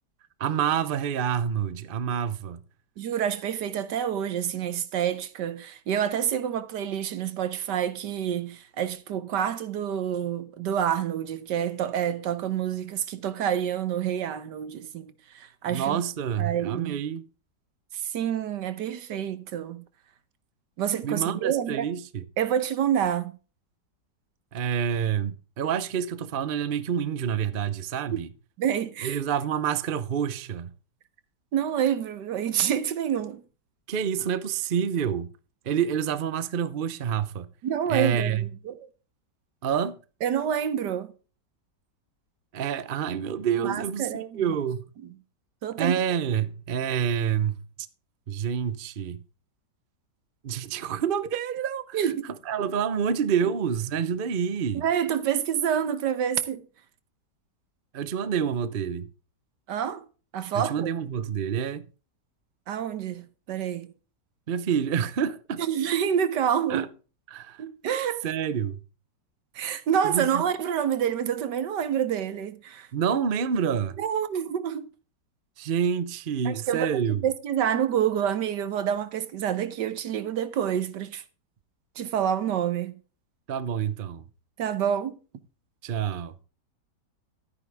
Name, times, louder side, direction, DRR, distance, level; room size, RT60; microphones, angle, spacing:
voice 1, 0.4-2.6 15.7-17.3 21.0-22.2 24.5-28.3 29.0-30.7 33.9-35.3 35.7-37.5 37.9-38.5 39.6-40.0 42.5-44.1 44.3-44.8 45.8-47.6 48.3-49.2 50.4-52.0 52.5-54.8 57.9-59.1 60.5-61.9 64.5-65.6 66.7-66.9 67.3-67.6 68.2-68.8 70.0-70.4 72.9-74.0 75.6-77.2 83.5-84.2 85.8-86.3, right 8 dB, 45° right, 0.7 m, -27 dB
voice 2, 3.0-16.0 16.4-17.0 17.9-19.8 20.8-21.8 22.4-23.3 28.6-29.2 31.5-33.4 37.6-38.8 40.2-41.1 43.6-44.5 45.6-45.9 51.9-52.3 54.7-56.6 59.7-60.1 60.3-60.9 62.7-63.9 65.6-66.9 67.6-68.2 69.5-72.9 74.0-74.9 76.4-81.2 82.0-82.9 84.6-85.2, right 9 dB, 75° right, 1.6 m, -28 dB
12.0 x 9.6 x 3.5 m
omnidirectional pair, 1.9 m